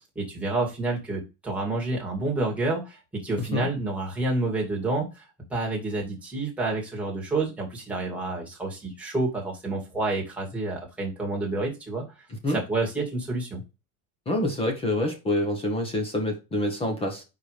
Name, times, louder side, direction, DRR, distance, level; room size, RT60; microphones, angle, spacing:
voice 1, 0.2-5.2 5.5-12.0 12.4-13.6, right 2 dB, 5° right, 2.0 m, -29 dB
voice 2, 14.3-17.2, left 1 dB, 15° left, 1.2 m, -26 dB
4.8 x 4.8 x 4.9 m
cardioid pair, 180°, 40 cm